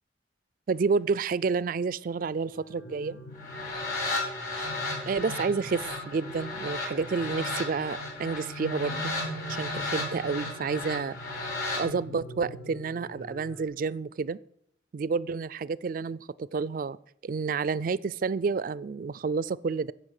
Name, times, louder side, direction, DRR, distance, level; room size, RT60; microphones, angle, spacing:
voice 1, 0.7-3.2 5.1-9.1 9.5-11.2 11.8-14.4 14.9-16.2 16.5-17.0 17.2-19.9, right 5 dB, 50° right, 20 dB, 0.3 m, -29 dB
sound 1, 2.5-13.6, equal, 70° left, 2.1 m, -42 dB
sound 2, 3.3-11.8, left 3 dB, 50° left, 4.6 m, -34 dB
15.0 x 5.6 x 6.5 m, 0.71 s
head